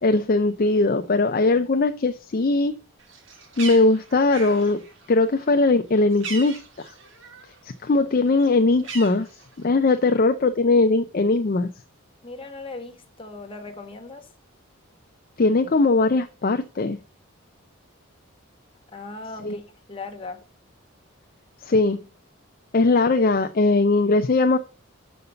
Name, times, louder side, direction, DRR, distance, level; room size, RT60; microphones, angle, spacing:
voice 1, 0.0-2.8 3.6-4.8 5.1-6.9 7.8-9.3 9.6-11.7 15.4-17.0 19.4-19.6 21.6-22.0 22.7-24.6, left 3 dB, 40° left, 0.5 m, -20 dB
Bird, 3.0-7.6 7.9-9.8, right 4 dB, 60° right, 1.8 m, -39 dB
voice 2, 12.2-14.3 18.9-20.4, left 3 dB, 25° left, 1.3 m, -38 dB
6.7 x 5.3 x 6.8 m
head